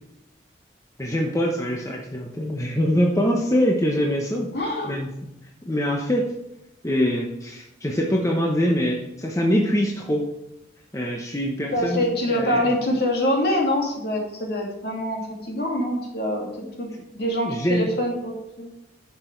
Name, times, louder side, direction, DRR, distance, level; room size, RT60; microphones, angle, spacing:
voice 1, 1.0-4.5 4.8-5.1 5.7-6.3 6.8-10.3 10.9-12.7 17.4-17.9, equal, 15° left, -1 dB, 1.0 m, -24 dB
voice 2, 4.5-5.0 11.7-15.2 15.5-16.5 16.8-16.9 17.1-18.7, left 1 dB, 55° left, 0 dB, 2.6 m, -25 dB
11.0 x 6.1 x 4.6 m, 0.89 s
head